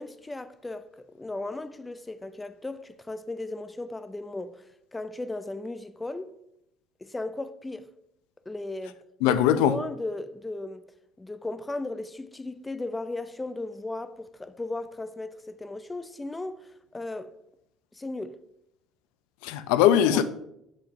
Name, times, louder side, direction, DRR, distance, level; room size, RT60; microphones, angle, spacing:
voice 1, 0.0-4.7 4.9-6.3 7.0-7.9 8.5-10.8 11.2-17.3 17.9-18.4 20.0-20.2, left 2 dB, 15° left, 0.6 m, -36 dB
voice 2, 9.2-9.8 19.4-20.2, left 10 dB, 80° left, 0.6 m, -20 dB
7.3 x 5.3 x 5.2 m
supercardioid pair, 90°, 0 cm